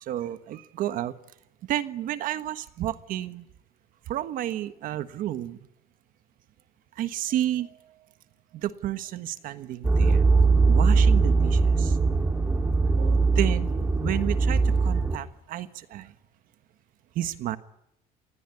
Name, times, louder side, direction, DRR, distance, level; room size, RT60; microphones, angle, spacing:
voice 1, 0.0-1.1 1.7-3.4 4.1-5.7 7.0-7.9 8.5-10.2 10.7-12.0 13.0-13.7 14.0-16.1 17.1-17.6, right 12 dB, 60° right, 12 dB, 1.3 m, -31 dB
sound 1, 9.8-15.2, right 4 dB, 10° right, 2.3 m, -21 dB
27.0 x 20.5 x 9.8 m, 0.85 s
cardioid pair, 160°, 16 cm